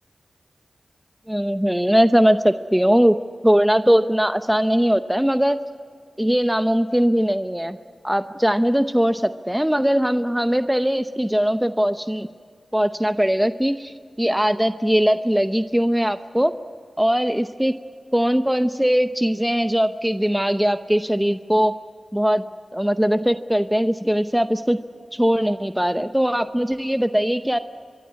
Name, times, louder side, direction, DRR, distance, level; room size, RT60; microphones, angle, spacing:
voice 1, 1.3-3.2 3.4-5.6 6.2-7.8 8.0-12.3 12.7-16.5 17.0-17.8 18.1-21.8 22.1-22.5 22.7-24.8 25.1-27.6, equal, 5° right, 10 dB, 0.8 m, -20 dB
25.5 x 23.0 x 8.4 m, 2.2 s
cardioid pair, 60°, 0 cm